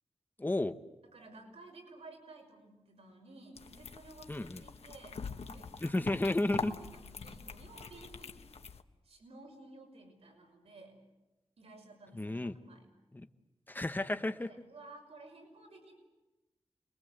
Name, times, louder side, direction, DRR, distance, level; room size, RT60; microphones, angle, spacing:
voice 1, 0.4-0.8 4.3-4.6 5.8-6.7 12.1-12.6 13.1-13.3 13.7-14.5, left 2 dB, 20° left, 9 dB, 1.0 m, -32 dB
voice 2, 1.1-8.5 9.0-10.9 11.6-12.9 14.4-16.0, right 2 dB, 90° right, 2 dB, 5.8 m, -54 dB
sound 1, 3.6-8.8, left 5 dB, 80° left, 1.2 m, -44 dB
29.5 x 22.0 x 8.0 m, 1.0 s
wide cardioid pair, 130°, 10 cm